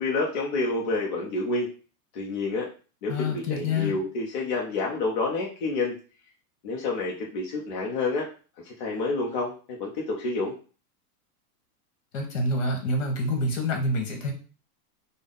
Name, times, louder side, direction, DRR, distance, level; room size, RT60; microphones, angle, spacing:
voice 1, 0.0-1.7 2.1-2.7 3.0-6.0 6.6-8.3 8.6-9.5 9.8-10.5, left 3 dB, 35° left, -3 dB, 0.5 m, -28 dB
voice 2, 3.1-4.0 12.1-14.3, left 2 dB, 55° left, 3 dB, 1.2 m, -27 dB
3.4 x 2.1 x 3.7 m, 0.37 s
supercardioid pair, 170°, 46 cm